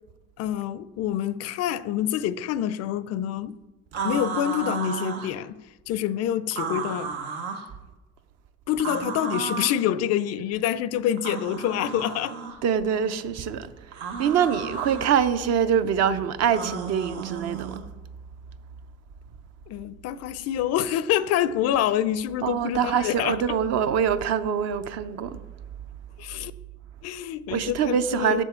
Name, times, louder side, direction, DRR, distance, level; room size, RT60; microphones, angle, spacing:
voice 1, 0.4-3.6 4.0-5.6 5.9-7.1 8.7-12.4 19.7-23.6 26.2-26.5 27.0-28.4, left 11 dB, 50° left, 0.4 m, -26 dB
sound 1, 3.9-5.3 6.5-7.7 8.8-9.8 11.2-12.6 13.9-15.1 16.5-17.8, right 5 dB, 85° right, 1.0 m, -33 dB
voice 2, 12.6-13.7 13.9-17.8 22.4-25.4 27.5-28.4, right 8 dB, 50° right, 0.6 m, -24 dB
7.3 x 6.2 x 4.3 m
hypercardioid pair, 75°, 33 cm